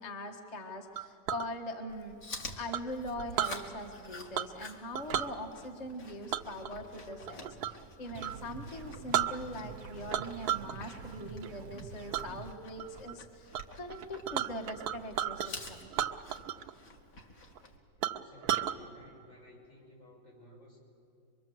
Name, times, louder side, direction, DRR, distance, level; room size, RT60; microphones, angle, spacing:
voice 1, 0.0-2.2 2.6-15.9, left 1 dB, 25° left, 3 dB, 1.3 m, -42 dB
Chink clink, 1.0-1.5 2.7-3.6 4.3-4.7 4.9-5.3 6.3-7.8 8.2-8.4 8.8-8.9 9.1-9.8 10.1-10.7 11.1-11.5 12.1-12.3 12.8-13.1 13.5-13.6 13.9-15.5 15.9-16.7 17.0-17.1 17.6-17.7 18.0-18.8, right 10 dB, 65° right, 1.1 m, -33 dB
Chewing mastication, 1.9-17.8, left 2 dB, 45° left, 2.1 m, -49 dB
sound 1, 8.1-12.5, right 6 dB, 85° right, 1.7 m, -47 dB
voice 2, 18.1-20.8, equal, 70° left, -1 dB, 6.3 m, -56 dB
24.0 x 23.5 x 7.7 m, 2.5 s
omnidirectional pair, 2.1 m